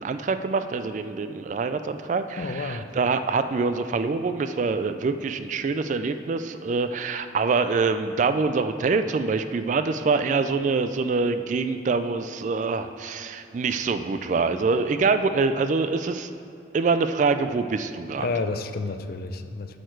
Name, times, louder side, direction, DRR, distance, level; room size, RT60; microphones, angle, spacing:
voice 1, 0.0-16.3 16.7-18.3, right 4 dB, 40° right, 10 dB, 0.3 m, -25 dB
voice 2, 2.3-2.9 18.2-19.8, left 3 dB, 55° left, 9 dB, 0.5 m, -30 dB
9.2 x 6.5 x 4.5 m, 2.6 s
head